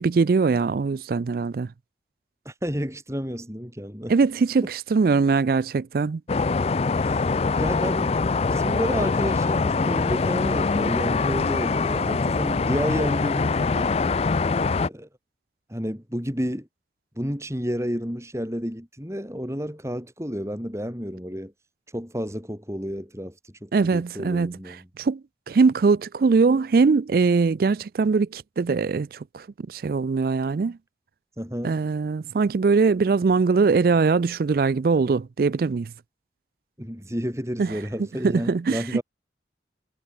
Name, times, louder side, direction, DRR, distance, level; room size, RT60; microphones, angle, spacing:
voice 1, 0.0-1.7 4.1-6.2 23.7-24.6 25.0-25.2 25.5-30.8 31.6-35.9 37.6-37.7 38.2-38.8, right 4 dB, 50° right, 0.4 m, -21 dB
voice 2, 2.5-4.1 4.6-4.7 7.0-7.2 7.6-8.2 8.5-13.9 14.9-15.1 15.7-16.7 17.2-21.5 21.9-24.9 31.4-31.8 36.8-39.0, equal, 15° right, 5.7 m, -31 dB
sound 1, 6.3-14.9, left 4 dB, 35° left, 0.4 m, -23 dB
head